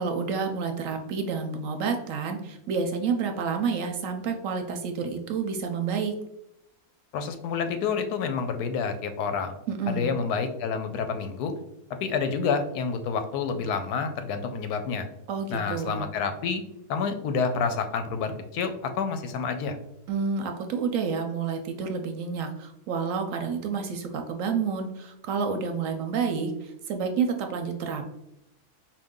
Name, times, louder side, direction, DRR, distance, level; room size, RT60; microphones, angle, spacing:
voice 1, 0.0-6.1 9.7-10.1 15.3-16.1 20.1-28.1, right 5 dB, 70° right, 5 dB, 0.8 m, -29 dB
voice 2, 7.1-9.6 9.9-11.5 11.9-15.1 15.5-16.6 16.9-19.8, left 5 dB, 90° left, 8 dB, 1.1 m, -28 dB
4.6 x 2.5 x 3.6 m, 0.84 s
omnidirectional pair, 1.6 m